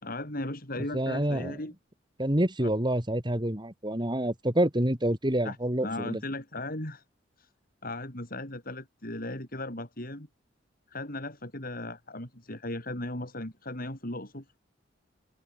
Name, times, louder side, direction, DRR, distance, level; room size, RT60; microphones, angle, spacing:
voice 1, 0.0-1.7 2.6-2.7 5.4-7.0 7.4-7.5 7.8-10.3 10.9-14.4, left 1 dB, 50° left, 6.7 m, -37 dB
voice 2, 0.9-1.5 2.2-6.2, right 1 dB, 25° right, 3.2 m, -27 dB
head